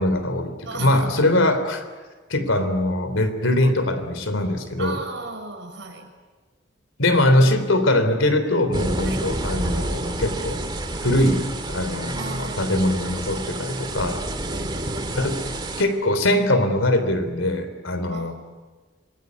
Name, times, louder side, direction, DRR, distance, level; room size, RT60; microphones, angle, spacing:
voice 1, 0.0-1.8 2.3-5.0 7.0-10.6 11.0-14.2 15.1-15.5 15.8-18.3, left 1 dB, 90° left, 10 dB, 3.5 m, -22 dB
voice 2, 0.7-1.2 4.8-6.1 9.0-9.3 12.1-12.8 14.4-15.5 18.1-18.3, right 3 dB, 65° right, 4 dB, 5.8 m, -36 dB
sound 1, 8.7-15.8, right 1 dB, 20° right, 2.3 m, -29 dB
26.5 x 22.0 x 9.5 m, 1.4 s
head